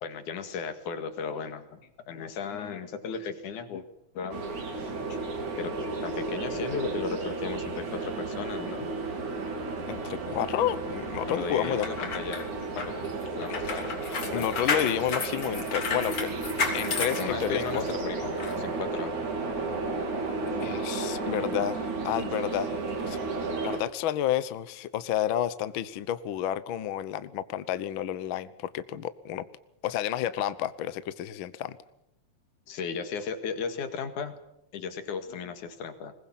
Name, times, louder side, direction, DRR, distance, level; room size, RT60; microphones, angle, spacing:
voice 1, 0.0-1.8 2.1-3.8 4.1-4.6 5.1-5.2 5.6-8.9 11.3-12.5 12.8-13.1 13.4-14.5 17.2-19.1 32.7-34.3 34.7-36.2, left 6 dB, 90° left, 8 dB, 3.3 m, -36 dB
sound 1, 4.3-23.8, right 3 dB, 75° right, 4.6 m, -33 dB
voice 2, 9.9-11.9 13.5-13.6 14.3-16.3 16.7-17.8 20.6-23.2 23.6-29.4 29.8-31.8, left 11 dB, 65° left, 14 dB, 1.3 m, -30 dB
sound 2, 11.6-17.9 18.4-18.5, left 4 dB, 45° left, 3.8 m, -32 dB
21.5 x 20.0 x 7.4 m, 0.83 s
omnidirectional pair, 3.4 m